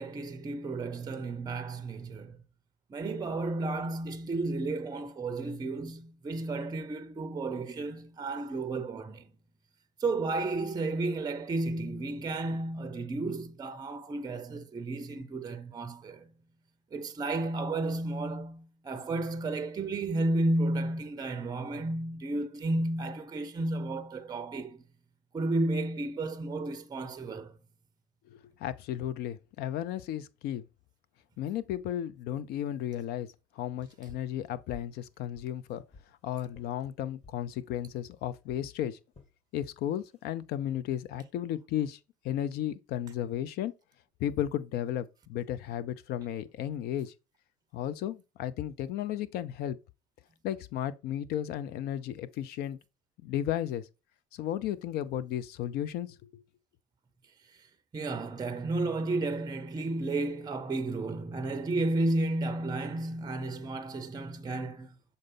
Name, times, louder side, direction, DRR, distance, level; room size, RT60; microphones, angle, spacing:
voice 1, 0.0-2.3 2.9-9.2 10.0-16.3 16.9-24.8 25.3-27.5 57.9-64.9, right 2 dB, 20° right, 0.6 m, -32 dB
voice 2, 28.3-30.6 31.4-33.3 33.5-35.8 36.2-39.0 39.5-42.0 42.2-43.7 44.2-47.1 47.7-49.8 50.4-52.8 53.2-53.9 54.3-56.4, left 11 dB, 50° left, 0.5 m, -34 dB
sound 1, 34.1-34.3 34.7-35.0 35.3-36.1 36.5-36.7 37.2-37.4 37.8-38.0 38.5-38.7 39.1-39.3 39.9-40.2, left 3 dB, 30° left, 2.0 m, -53 dB
6.5 x 4.1 x 3.7 m
figure-of-eight pair, 60°, 20 cm